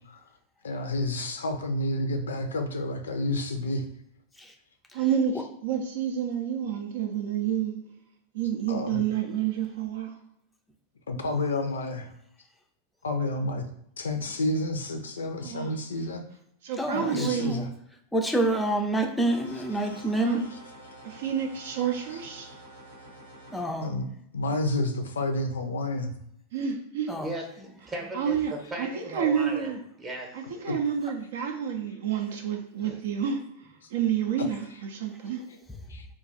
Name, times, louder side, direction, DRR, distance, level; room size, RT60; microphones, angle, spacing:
voice 1, 0.6-3.8 8.7-9.0 11.1-12.1 13.0-13.7 14.0-16.2 16.9-17.7 19.8-20.0 23.8-26.1 30.7-30.8 35.9-36.1, left 2 dB, 70° left, 6 dB, 0.4 m, -30 dB
voice 2, 4.9-5.4 5.6-7.7 8.3-10.2 15.4-15.8 16.6-17.6 20.2-20.4 21.0-22.6 26.5-27.1 28.1-29.8 30.3-33.4 33.9-35.4, right 8 dB, 55° right, 4 dB, 0.4 m, -29 dB
voice 3, 16.8-17.7 18.1-20.4 23.5-23.9 27.1-27.3, right 2 dB, 5° left, 3 dB, 0.4 m, -27 dB
sound 1, 19.2-23.6, right 1 dB, 85° right, 0.9 m, -48 dB
voice 4, 27.2-29.7 30.0-30.3 32.8-33.0, right 1 dB, 20° right, 1 dB, 0.8 m, -37 dB
2.4 x 2.3 x 3.8 m, 0.73 s
figure-of-eight pair, 90°, 0 cm